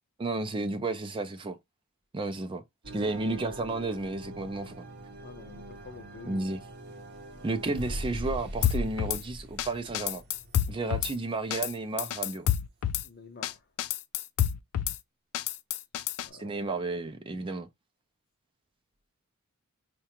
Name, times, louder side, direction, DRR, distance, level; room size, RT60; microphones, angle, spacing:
voice 1, 0.2-1.6 2.1-2.6 2.9-4.9 6.2-6.6 7.4-10.2 10.7-12.5 16.3-17.7, right 2 dB, 25° right, 0.4 m, -32 dB
sound 1, 2.8-12.3, right 1 dB, 50° right, 0.7 m, -43 dB
voice 2, 5.2-6.4 13.0-13.6 16.2-16.6, left 4 dB, 45° left, 0.6 m, -48 dB
Drum kit / Snare drum, 8.6-9.2 9.6-9.7 9.9-11.1 11.5-11.7 12.0-13.0 13.4-13.5 13.8-15.0 15.3-16.3, left 10 dB, 90° left, 0.4 m, -28 dB
4.6 x 2.2 x 2.8 m
head